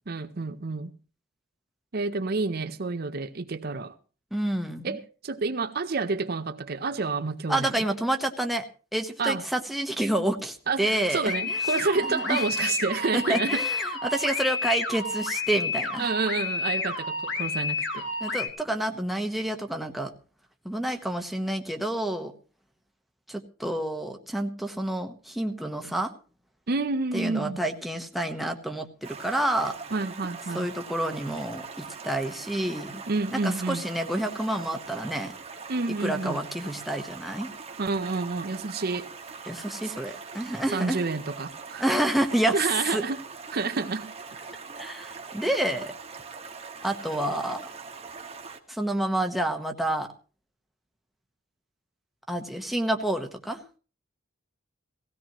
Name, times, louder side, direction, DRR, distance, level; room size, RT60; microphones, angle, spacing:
voice 1, 0.1-0.9 1.9-3.9 4.8-7.7 9.2-9.4 10.7-13.6 16.0-18.1 26.7-27.6 29.9-30.7 33.1-33.8 35.7-36.4 37.8-39.1 40.7-42.0 42.5-43.2 43.5-44.1, right 4 dB, 50° right, 0.7 m, -29 dB
voice 2, 4.3-5.0 7.5-8.7 8.9-11.6 12.1-12.7 13.1-16.1 18.2-20.1 20.6-22.3 23.3-26.1 27.1-29.8 30.5-33.0 33.3-35.3 36.0-37.5 39.5-41.0 41.8-42.5 42.9-43.0 44.8-45.9 46.8-47.6 48.7-50.1 52.3-53.6, right 1 dB, ahead, 1.1 m, -29 dB
sound 1, 11.3-18.5, left 3 dB, 65° left, 2.7 m, -30 dB
Stream, 29.0-48.6, right 5 dB, 30° right, 1.3 m, -42 dB
18.0 x 16.5 x 3.0 m
head